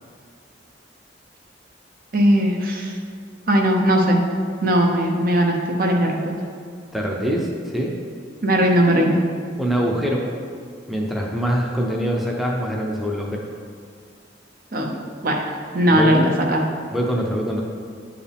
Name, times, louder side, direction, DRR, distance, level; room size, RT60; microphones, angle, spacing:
voice 1, 2.1-3.0 3.5-4.2 4.6-6.3 8.4-9.2 14.7-16.6, equal, 50° right, 1 dB, 0.8 m, -19 dB
voice 2, 6.9-8.0 9.6-10.3 10.9-13.4 15.9-16.1 16.9-17.6, equal, ahead, -2 dB, 0.6 m, -24 dB
9.7 x 4.8 x 3.5 m, 2.2 s
head